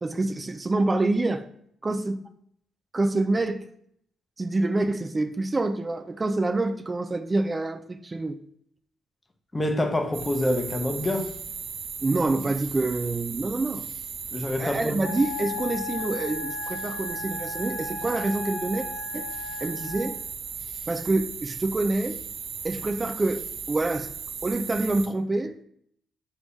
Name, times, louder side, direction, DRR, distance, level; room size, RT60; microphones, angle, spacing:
voice 1, 0.0-1.5 1.8-2.3 2.9-3.7 4.4-8.4 12.0-13.8 14.6-18.9 19.1-19.3 19.6-20.2 20.9-22.2 22.6-24.1 24.4-25.5, right 2 dB, 25° right, 0.4 m, -26 dB
voice 2, 9.5-11.3 14.3-15.0, left 1 dB, 20° left, 0.8 m, -26 dB
sound 1, 10.1-25.1, right 6 dB, 75° right, 0.7 m, -37 dB
Wind instrument woodwind instrument, 15.0-20.2, left 5 dB, 60° left, 0.6 m, -36 dB
3.4 x 3.4 x 4.0 m
cardioid pair, 90°, 0 cm